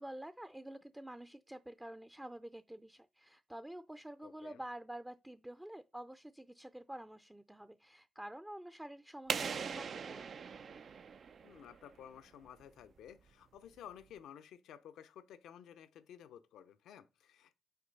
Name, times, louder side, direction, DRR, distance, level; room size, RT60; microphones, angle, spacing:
voice 1, 0.0-10.2, right 1 dB, 10° right, 0.5 m, -48 dB
voice 2, 4.2-4.6 11.4-17.6, left 9 dB, 85° left, 0.6 m, -54 dB
sound 1, 9.3-11.9, right 6 dB, 65° right, 0.5 m, -40 dB
5.8 x 3.7 x 5.2 m
supercardioid pair, 55°, 0 cm